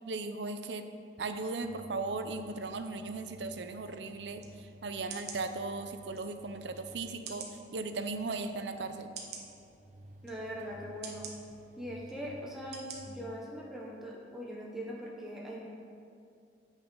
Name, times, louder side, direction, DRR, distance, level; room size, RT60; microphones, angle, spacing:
voice 1, 0.1-0.9 1.2-7.5 7.7-9.1, right 3 dB, 85° right, 8 dB, 0.6 m, -37 dB
sound 1, 1.6-13.1, equal, 45° right, 0.8 m, -55 dB
sound 2, 4.4-4.5 5.1-5.4 6.1-6.2 7.2-7.6 8.3-8.4 9.1-9.4 10.2-10.4 11.0-11.3 12.1-12.2 12.7-13.0 13.4-13.5, right 6 dB, 70° right, 1.1 m, -44 dB
voice 2, 10.2-11.3 11.8-15.7, equal, ahead, -4 dB, 0.9 m, -41 dB
8.6 x 6.2 x 5.3 m, 2.4 s
head